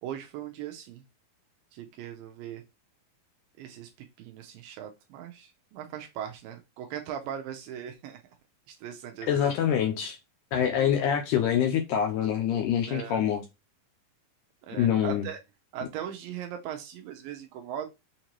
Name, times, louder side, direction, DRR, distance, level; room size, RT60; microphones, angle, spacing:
voice 1, 0.0-1.0 1.7-2.6 3.6-3.9 4.2-8.2 8.7-9.6 12.8-13.3 14.7-15.4 15.7-17.9, right 10 dB, 80° right, 2.2 m, -39 dB
voice 2, 9.3-10.2 10.5-13.4 14.8-15.3, left 9 dB, 80° left, 1.8 m, -25 dB
6.5 x 2.6 x 2.9 m
omnidirectional pair, 4.2 m